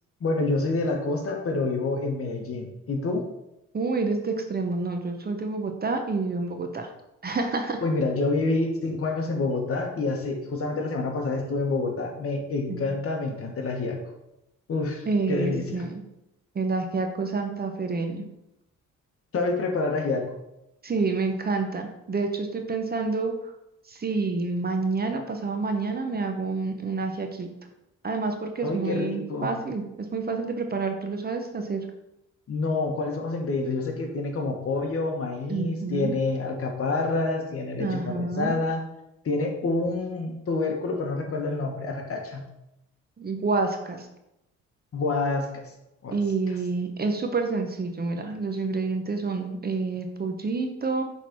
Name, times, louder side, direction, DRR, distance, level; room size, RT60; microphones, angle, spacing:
voice 1, 0.2-3.2 7.8-14.0 14.7-15.8 19.3-20.3 28.6-29.5 32.5-38.8 39.2-42.4 44.9-45.6 46.0-46.2, left 3 dB, 50° left, 2 dB, 1.4 m, -27 dB
voice 2, 3.7-6.9 7.2-7.8 12.7-12.9 15.1-16.0 16.5-18.2 20.8-23.5 23.9-27.5 28.0-29.8 30.1-31.8 35.5-36.1 37.8-38.5 43.2-44.1 46.1-51.0, right 3 dB, 30° right, 5 dB, 0.9 m, -28 dB
6.0 x 4.0 x 4.6 m, 0.86 s
cardioid pair, 90°, 30 cm